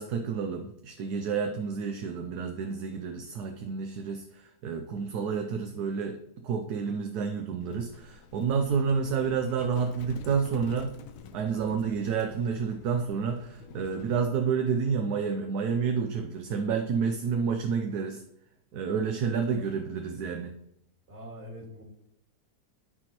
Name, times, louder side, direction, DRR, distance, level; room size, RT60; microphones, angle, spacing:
voice 1, 0.0-6.2 6.4-10.9 11.3-18.2 18.7-20.5, right 6 dB, 70° right, 5 dB, 1.1 m, -29 dB
Livestock farm animals working animals, 7.6-14.3, left 5 dB, 65° left, 1.0 m, -47 dB
voice 2, 21.1-21.8, equal, 40° right, -3 dB, 2.4 m, -43 dB
12.5 x 4.4 x 3.0 m, 0.78 s
omnidirectional pair, 1.8 m